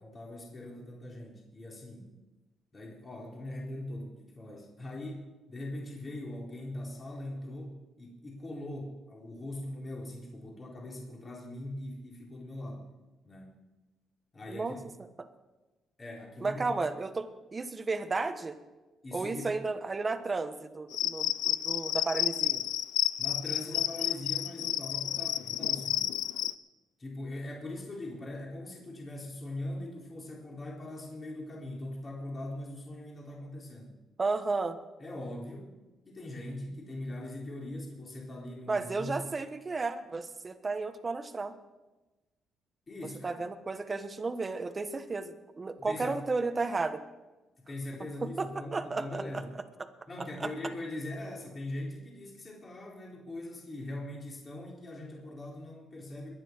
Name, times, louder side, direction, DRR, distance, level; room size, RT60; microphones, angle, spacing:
voice 1, 0.0-2.1 2.7-12.9 13.3-13.6 14.3-14.8 16.0-16.8 19.0-19.6 23.2-26.1 27.0-33.9 35.0-35.7 36.1-39.1 42.9-43.4 45.8-46.2 47.6-49.5 50.1-56.3, left 1 dB, 30° left, -2 dB, 3.9 m, -41 dB
voice 2, 16.4-18.5 19.1-22.6 34.2-34.8 38.7-41.5 43.2-47.0 48.4-49.2 50.2-50.5, right 3 dB, 30° right, 9 dB, 1.3 m, -33 dB
Cricket, 20.9-26.5, left 13 dB, 90° left, 0.5 m, -31 dB
22.0 x 9.7 x 4.6 m, 1.1 s
cardioid pair, 90°, 0 cm